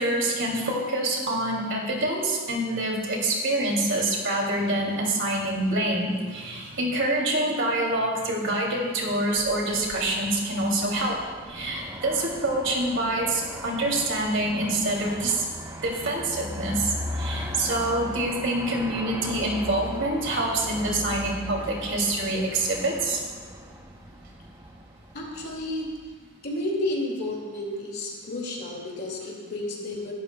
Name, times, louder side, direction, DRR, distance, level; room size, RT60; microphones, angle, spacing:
voice 1, 0.0-11.2 11.5-15.3 15.8-16.8 17.2-23.2, right 1 dB, 60° right, -1 dB, 2.7 m, -26 dB
Aircraft, 9.1-26.4, equal, 15° right, 0.9 m, -38 dB
voice 2, 25.1-25.9 26.4-30.1, left 1 dB, 50° left, -2 dB, 2.3 m, -31 dB
20.5 x 12.0 x 2.3 m, 1.5 s
head